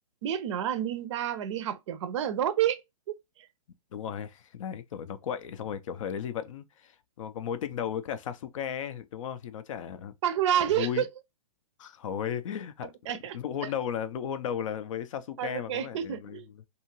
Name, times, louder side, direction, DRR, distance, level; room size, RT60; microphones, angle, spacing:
voice 1, 0.2-2.8 3.1-3.2 10.2-11.1 13.1-13.4 15.4-16.5, right 10 dB, 50° right, 0.5 m, -29 dB
voice 2, 3.9-10.1 10.7-11.1 11.8-12.9 13.3-16.7, left 8 dB, 55° left, 0.4 m, -35 dB
2.7 x 2.4 x 2.9 m
hypercardioid pair, 140°, 20 cm